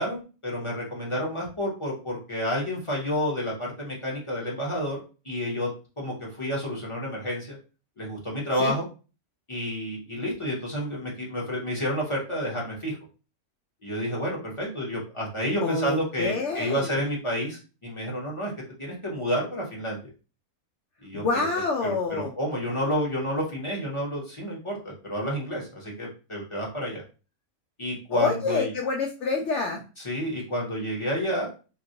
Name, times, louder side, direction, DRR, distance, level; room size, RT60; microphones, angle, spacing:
voice 1, 0.0-5.0 5.2-5.7 6.0-7.6 8.0-8.9 9.5-13.0 13.8-18.5 18.8-20.0 21.0-21.2 21.8-27.0 27.8-28.7 30.0-31.5, equal, 30° left, -3 dB, 0.7 m, -30 dB
voice 2, 15.6-17.0 21.1-22.3 28.1-29.8, left 4 dB, 65° left, 0 dB, 0.8 m, -27 dB
3.0 x 2.5 x 2.6 m, 0.34 s
omnidirectional pair, 1.5 m